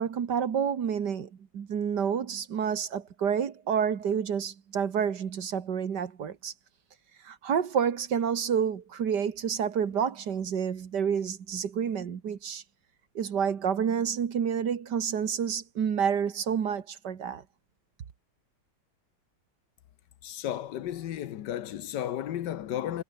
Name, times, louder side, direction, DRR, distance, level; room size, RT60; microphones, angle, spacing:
voice 1, 0.0-6.5 7.2-12.6 13.2-17.4, right 7 dB, 65° right, 2.1 m, -29 dB
voice 2, 20.2-23.0, left 11 dB, 70° left, 1.5 m, -33 dB
omnidirectional pair, 2.0 m